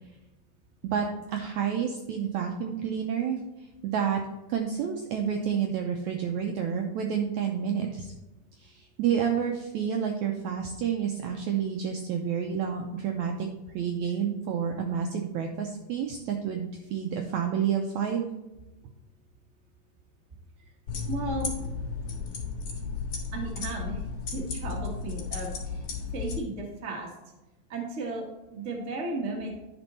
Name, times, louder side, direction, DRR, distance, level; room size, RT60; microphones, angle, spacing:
voice 1, 0.8-3.4 3.8-4.2 4.5-8.1 8.6-13.5 13.7-18.3, right 8 dB, 85° right, 2 dB, 1.6 m, -29 dB
sound 1, 20.9-26.4, left 5 dB, 60° left, 2.9 m, -34 dB
voice 2, 21.1-21.5 23.3-24.0 24.3-25.8 26.1-27.1 27.7-29.6, right 2 dB, 65° right, -1 dB, 0.7 m, -34 dB
11.5 x 4.4 x 4.1 m, 1.0 s
omnidirectional pair, 4.1 m